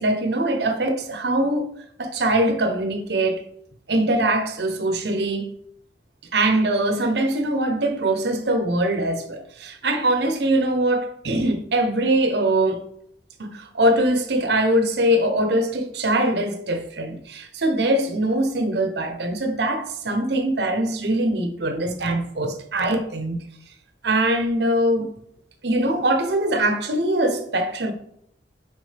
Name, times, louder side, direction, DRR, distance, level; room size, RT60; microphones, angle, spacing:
voice 1, 0.0-1.7 2.0-3.4 3.9-5.5 6.3-12.8 13.4-23.4 24.0-25.1 25.6-27.9, right 1 dB, 60° right, 0.8 m, -22 dB
6.4 x 5.0 x 3.4 m
head